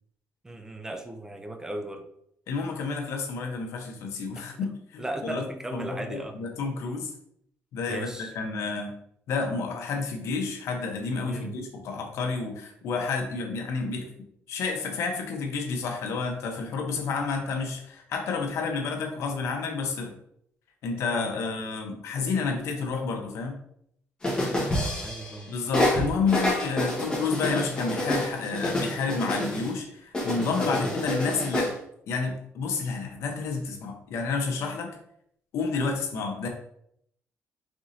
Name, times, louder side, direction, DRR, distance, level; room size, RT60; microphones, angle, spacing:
voice 1, 0.4-2.1 4.4-4.5 5.0-6.4 7.9-8.3 11.2-11.5 24.3-25.5 30.6-30.9, right 1 dB, 10° right, 6 dB, 0.5 m, -36 dB
voice 2, 2.5-7.1 7.7-8.9 9.3-14.1 14.5-20.2 20.8-23.6 25.5-31.8 32.1-35.0 35.5-36.5, left 4 dB, 75° left, 3 dB, 0.9 m, -30 dB
sound 1, 24.2-25.4 25.7-29.7 30.1-31.7, left 1 dB, 15° left, 1.4 m, -28 dB
4.8 x 3.8 x 2.7 m, 0.71 s
cardioid pair, 135°, 5 cm